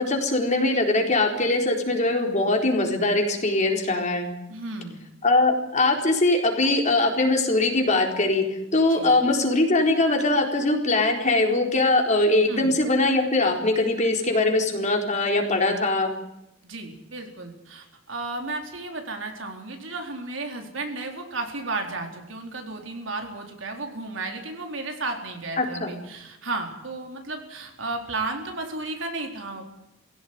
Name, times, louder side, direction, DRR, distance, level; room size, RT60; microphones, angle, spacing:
voice 1, 0.0-4.3 5.2-8.4 8.7-16.1 25.6-25.9, left 2 dB, 40° left, 2 dB, 4.2 m, -22 dB
voice 2, 4.5-5.0 8.9-9.1 12.5-12.8 16.6-29.6, right 3 dB, 70° right, 3 dB, 4.3 m, -33 dB
20.5 x 17.0 x 9.6 m, 0.87 s
head